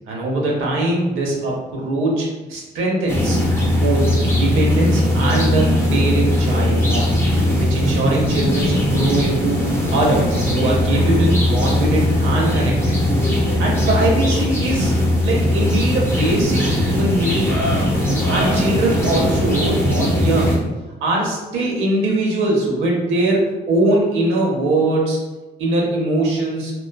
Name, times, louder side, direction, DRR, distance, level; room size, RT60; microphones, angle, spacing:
voice 1, 0.1-7.1 7.6-13.0 13.6-14.9 15.2-17.6 18.3-20.7 21.0-25.2 25.6-26.7, right 1 dB, 85° right, -2 dB, 0.7 m, -21 dB
sound 1, 3.1-20.6, left 1 dB, 10° left, 0.6 m, -19 dB
2.4 x 2.3 x 2.2 m, 1.1 s
cardioid pair, 90°, 20 cm